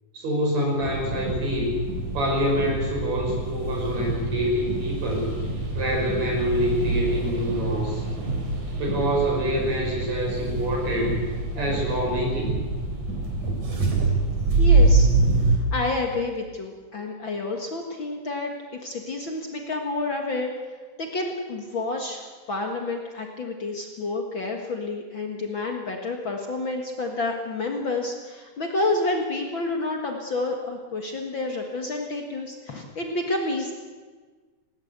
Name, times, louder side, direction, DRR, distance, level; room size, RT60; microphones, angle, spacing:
voice 1, 0.1-1.8 2.1-5.3 5.8-8.0 8.8-11.2 11.6-12.6, equal, 60° right, 0 dB, 6.9 m, -26 dB
sound 1, 0.8-15.6, right 3 dB, 75° right, 5.1 m, -25 dB
voice 2, 14.5-15.1 15.4-20.5 21.0-33.7, left 2 dB, 45° left, 2 dB, 2.1 m, -29 dB
20.0 x 18.5 x 8.1 m, 1.4 s
omnidirectional pair, 3.5 m